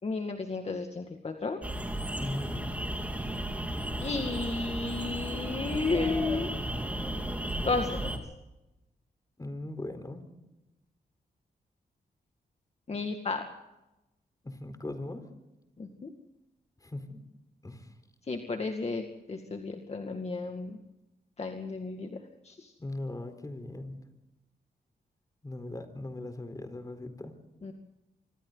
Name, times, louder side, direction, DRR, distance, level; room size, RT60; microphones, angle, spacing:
voice 1, 0.0-1.6 4.0-6.5 7.6-8.2 12.9-13.5 15.8-16.1 18.3-20.8 21.4-22.7 27.6-27.7, left 3 dB, 40° left, 4 dB, 2.1 m, -33 dB
sound 1, 1.6-8.2, right 1 dB, 10° right, 4.1 m, -34 dB
voice 2, 2.2-2.8 9.4-10.3 14.4-15.3 16.8-17.2 17.6-17.9 22.8-24.0 25.4-27.3, left 2 dB, 20° left, 8 dB, 4.2 m, -39 dB
25.5 x 25.5 x 4.0 m, 0.98 s
wide cardioid pair, 100°, 17 cm